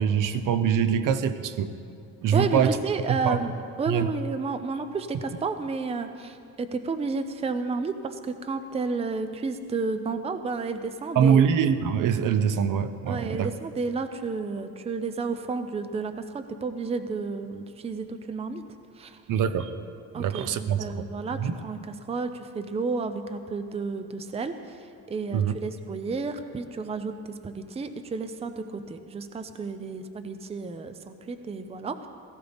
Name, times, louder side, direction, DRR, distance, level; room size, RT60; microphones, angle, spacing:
voice 1, 0.0-1.7 2.2-2.8 3.2-3.4 3.9-4.1 11.1-13.5 19.3-19.7 20.2-21.0 21.4-21.6 25.3-25.5, right 7 dB, 60° right, 12 dB, 0.8 m, -23 dB
voice 2, 2.3-3.5 3.8-11.5 13.1-18.6 19.0-19.2 20.1-21.8 22.1-32.1, right 4 dB, 15° right, 9 dB, 0.5 m, -31 dB
17.0 x 16.5 x 3.5 m, 2.4 s
cardioid pair, 140°, 37 cm